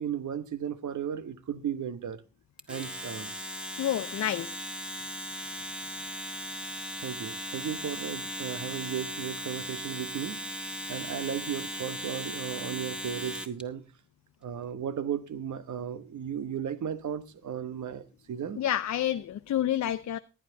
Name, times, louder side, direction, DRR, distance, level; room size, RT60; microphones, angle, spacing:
voice 1, 0.0-2.2 2.7-3.3 7.0-13.8 14.4-18.6, right 8 dB, 55° right, 1.3 m, -35 dB
Domestic sounds home sounds, 2.6-13.6, equal, 5° right, 1.8 m, -38 dB
voice 2, 3.8-4.6 18.6-20.2, left 11 dB, 50° left, 0.6 m, -29 dB
15.0 x 10.0 x 3.9 m
supercardioid pair, 50°, 35 cm